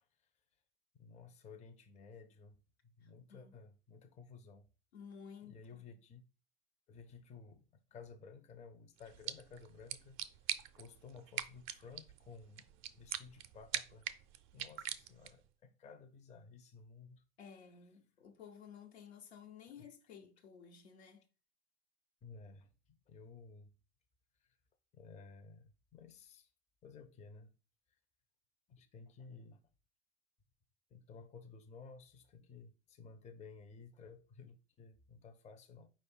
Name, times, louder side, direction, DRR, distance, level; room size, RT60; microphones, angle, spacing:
voice 1, 1.0-2.6 3.0-4.7 5.4-6.2 6.9-10.2 10.8-12.7 12.9-14.1 14.5-17.2 22.2-23.7 24.4-24.5 24.9-26.5 26.8-27.5 28.7-29.6 30.9-35.9, left 5 dB, 20° left, 0.6 m, -55 dB
voice 2, 3.0-3.5 4.9-5.9 17.4-21.3, left 7 dB, 75° left, 1.0 m, -54 dB
sound 1, 9.0-15.5, right 12 dB, 40° right, 0.5 m, -44 dB
4.7 x 2.4 x 4.4 m
hypercardioid pair, 85°, 32 cm